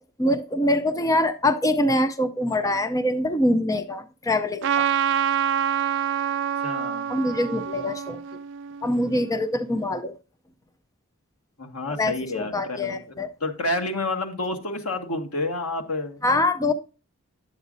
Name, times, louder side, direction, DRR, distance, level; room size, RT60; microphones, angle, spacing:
voice 1, 0.2-4.9 7.1-8.2 8.8-10.1 12.0-13.3 16.2-16.7, left 1 dB, 15° left, 0.5 m, -24 dB
Trumpet, 4.6-9.3, right 9 dB, 55° right, 0.4 m, -26 dB
voice 2, 6.6-7.1 11.6-16.2, left 2 dB, 90° left, 1.7 m, -29 dB
9.7 x 7.9 x 2.6 m
head